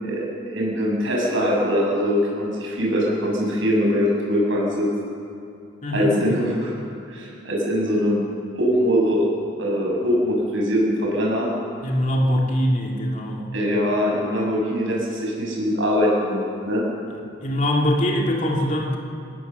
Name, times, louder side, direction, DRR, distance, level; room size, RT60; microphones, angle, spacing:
voice 1, 0.0-4.9 5.9-6.7 7.1-8.2 8.5-9.3 9.6-11.5 13.5-16.8, equal, 65° right, -2 dB, 6.7 m, -22 dB
voice 2, 5.8-6.1 11.8-13.5 17.4-19.0, equal, 35° left, -1 dB, 2.6 m, -22 dB
25.0 x 17.5 x 6.9 m, 2.6 s
head